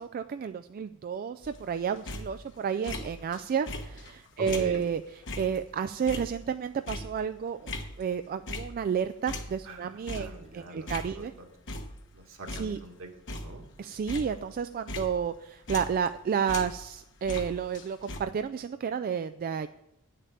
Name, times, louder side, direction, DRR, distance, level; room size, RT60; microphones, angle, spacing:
voice 1, 0.0-7.7 8.0-11.3 12.6-12.8 13.8-19.7, right 7 dB, 40° right, 10 dB, 0.3 m, -31 dB
sound 1, 1.4-3.4 3.7-9.0 9.3-11.4 11.7-12.2 12.5-16.2 16.5-18.2, left 2 dB, 55° left, 1.2 m, -40 dB
voice 2, 4.4-4.8 9.7-9.9 10.1-11.5 12.1-13.6, right 2 dB, 65° right, 2 dB, 1.9 m, -44 dB
8.9 x 6.7 x 8.5 m, 0.85 s
head